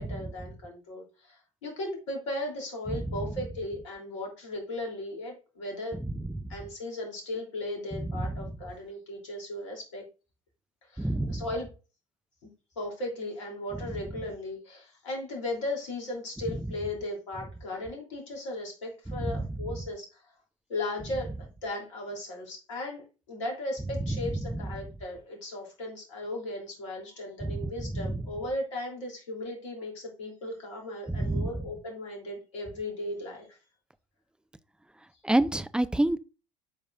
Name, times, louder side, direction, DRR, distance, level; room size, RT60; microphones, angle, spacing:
voice 1, 0.0-1.3 1.6-6.0 6.5-10.0 10.9-11.7 12.8-20.0 20.7-23.0 23.3-33.5, left 1 dB, 70° left, 3.2 m, -36 dB
voice 2, 2.9-3.3 6.0-6.4 8.0-8.5 11.0-11.5 19.1-19.6 24.0-24.6 27.4-28.2 31.1-31.5 35.2-36.2, right 1 dB, 5° right, 0.6 m, -29 dB
11.5 x 4.9 x 2.6 m
figure-of-eight pair, 65°, 16 cm